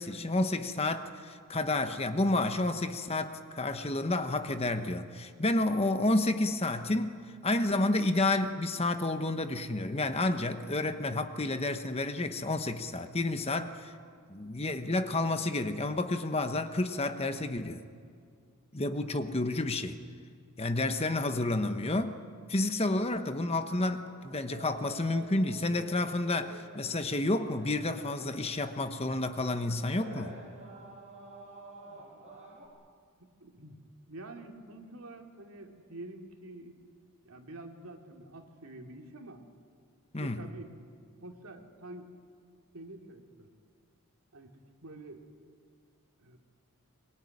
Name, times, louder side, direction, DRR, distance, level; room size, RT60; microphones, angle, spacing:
voice 1, 0.0-13.9 14.3-17.8 18.7-20.0 20.6-22.2 22.5-30.4 40.1-40.5, left 2 dB, 30° left, 8 dB, 1.1 m, -30 dB
sound 1, 24.1-29.5 29.7-32.7, right 2 dB, 30° right, 6.9 m, -49 dB
voice 2, 33.2-33.8 34.1-36.8 37.2-39.4 40.2-40.7 41.2-42.1 42.7-43.5 44.3-45.3 46.2-46.4, right 2 dB, 75° right, 3 dB, 2.9 m, -47 dB
23.0 x 23.0 x 9.8 m, 2.1 s
head